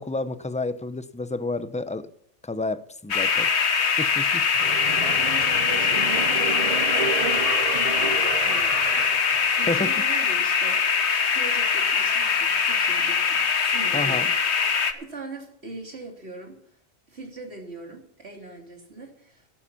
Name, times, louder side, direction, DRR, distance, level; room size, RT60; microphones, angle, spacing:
voice 1, 0.0-2.1 2.4-3.5 4.0-4.5 9.7-9.9 13.9-14.3, left 2 dB, 10° left, 13 dB, 0.4 m, -30 dB
sound 1, 3.1-14.9, left 6 dB, 70° left, 1.4 m, -22 dB
sound 2, 4.5-10.1 10.5-10.6, right 6 dB, 45° right, 0.5 m, -32 dB
voice 2, 4.6-7.5 7.9-14.3 14.9-16.6 17.1-19.5, right 3 dB, 65° right, 2 dB, 3.5 m, -40 dB
13.0 x 12.0 x 5.8 m, 0.71 s
omnidirectional pair, 1.2 m